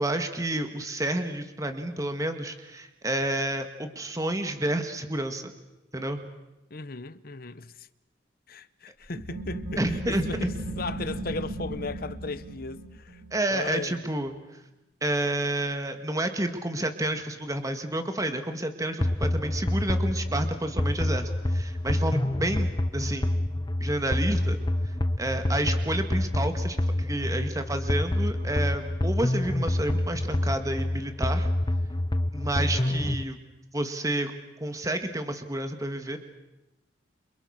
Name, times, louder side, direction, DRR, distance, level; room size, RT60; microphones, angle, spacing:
voice 1, 0.0-5.5 5.9-6.2 9.8-10.5 13.3-14.3 15.0-23.4 23.8-24.6 25.2-31.5 32.3-33.4 33.7-34.3 34.6-36.2, right 1 dB, 20° right, 1.8 m, -30 dB
voice 2, 6.7-7.9 8.5-13.2 13.5-14.0 32.6-33.1, left 3 dB, 50° left, 1.0 m, -37 dB
sound 1, 9.0-14.4, right 1 dB, 65° right, 2.9 m, -36 dB
sound 2, 19.0-33.2, left 1 dB, 25° left, 0.9 m, -27 dB
29.5 x 27.0 x 6.5 m
head